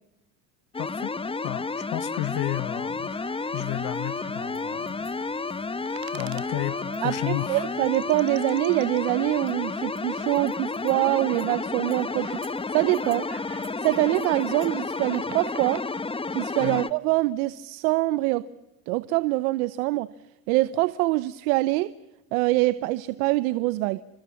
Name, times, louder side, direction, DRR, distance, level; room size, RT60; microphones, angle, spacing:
sound 1, 0.7-16.9, left 3 dB, 15° left, 1.0 m, -31 dB
voice 1, 0.8-1.2 1.4-3.1 3.5-5.1 6.1-7.7 16.6-16.8, left 19 dB, 60° left, 1.2 m, -32 dB
sound 2, 3.0-15.2, right 6 dB, 30° right, 3.1 m, -50 dB
sound 3, 3.9-4.0 4.5-6.5 6.9-7.0 7.4-7.5 7.8-11.0 11.3-11.5 11.9-12.0 12.4-13.2 13.6-16.5, right 13 dB, 55° right, 2.8 m, -49 dB
voice 2, 7.0-12.4 12.7-13.3 13.8-15.8 16.3-18.5 18.9-20.1 20.5-21.9 22.3-24.0, right 19 dB, 80° right, 1.0 m, -24 dB
28.5 x 26.0 x 7.2 m
supercardioid pair, 90°, 42 cm